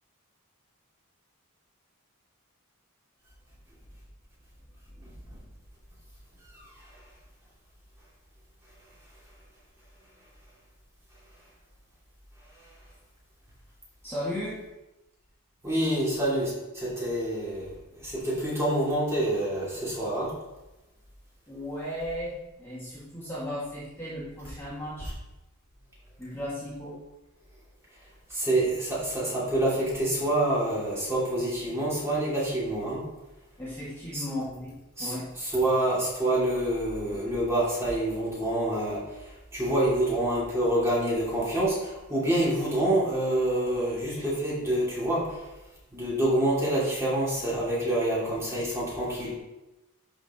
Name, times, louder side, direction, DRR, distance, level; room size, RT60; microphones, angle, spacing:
voice 1, 14.0-14.6 21.5-25.2 26.2-27.0 33.6-34.7 35.0-35.3, equal, 10° left, -10 dB, 2.3 m, -35 dB
voice 2, 15.6-20.3 28.3-33.0 34.1-34.2 35.0-39.0 39.5-45.4 45.9-49.4, right 1 dB, 10° right, -8 dB, 3.1 m, -27 dB
11.5 x 5.2 x 3.8 m, 1.0 s
head